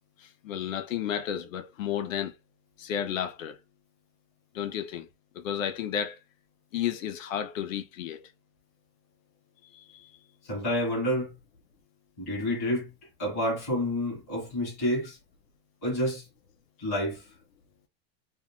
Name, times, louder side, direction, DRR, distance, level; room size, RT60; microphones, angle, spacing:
voice 1, 0.2-2.4 2.8-3.6 4.5-5.1 5.3-6.2 6.7-8.3 9.7-10.1, left 9 dB, 55° left, 0.6 m, -32 dB
voice 2, 10.4-11.3 12.2-12.9 13.2-15.2 15.8-16.3 16.8-17.3, left 1 dB, 10° left, 0.4 m, -29 dB
2.6 x 2.4 x 2.9 m
supercardioid pair, 180°, 49 cm